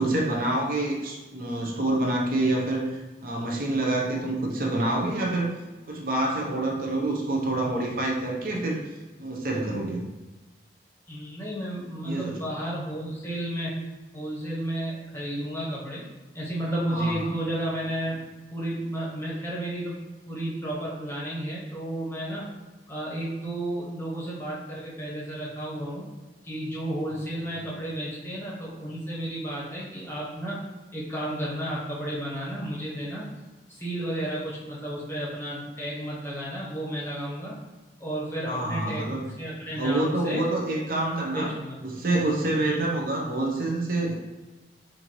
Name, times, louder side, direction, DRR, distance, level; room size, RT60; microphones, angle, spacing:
voice 1, 0.0-5.5 5.9-8.8 9.2-10.1 12.0-12.4 16.9-17.3 38.4-39.2 39.8-41.5 41.8-44.1, right 2 dB, 50° right, -1 dB, 0.7 m, -27 dB
voice 2, 11.1-13.8 14.1-16.0 16.3-18.2 18.5-22.5 22.9-26.1 26.4-30.7 30.9-33.3 33.7-37.6 38.0-39.1 39.4-40.4 41.3-41.8 42.6-42.8, right 1 dB, 15° left, -6 dB, 0.9 m, -32 dB
4.4 x 2.6 x 2.9 m, 1.2 s
head